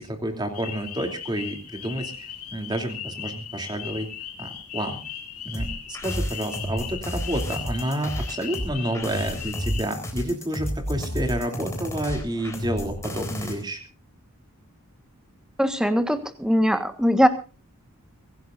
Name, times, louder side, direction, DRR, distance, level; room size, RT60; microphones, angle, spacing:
voice 1, 0.0-4.1 4.4-5.0 5.4-13.8, right 1 dB, 20° right, 4 dB, 3.0 m, -29 dB
sound 1, 0.5-9.8, left 9 dB, 90° left, 3.0 m, -38 dB
sound 2, 5.5-13.5, equal, 15° left, 3.9 m, -31 dB
voice 2, 15.6-17.3, equal, 5° right, 9 dB, 1.4 m, -21 dB
24.5 x 17.0 x 2.6 m, 0.34 s
head